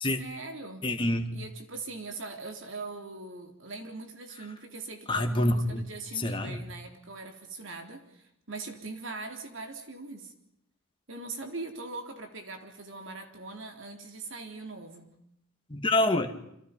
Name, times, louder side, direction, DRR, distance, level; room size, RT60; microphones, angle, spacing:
voice 1, 0.2-0.8 1.3-10.3 11.1-15.1, right 3 dB, 60° right, 4 dB, 3.7 m, -41 dB
voice 2, 0.8-1.4 5.1-5.9 6.2-6.6 15.7-16.3, left 1 dB, 25° left, 6 dB, 2.0 m, -27 dB
29.0 x 26.5 x 5.4 m, 0.79 s
head